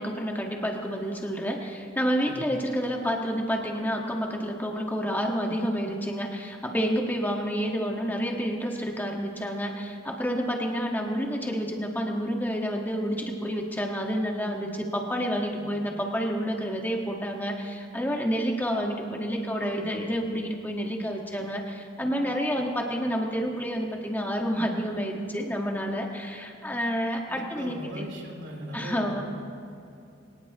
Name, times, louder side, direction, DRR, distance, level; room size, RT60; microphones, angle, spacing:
voice 1, 0.0-28.0 28.7-29.2, equal, 10° left, 0 dB, 1.6 m, -29 dB
voice 2, 27.3-29.2, right 1 dB, 70° right, -1 dB, 3.4 m, -39 dB
24.0 x 18.5 x 3.0 m, 2.6 s
head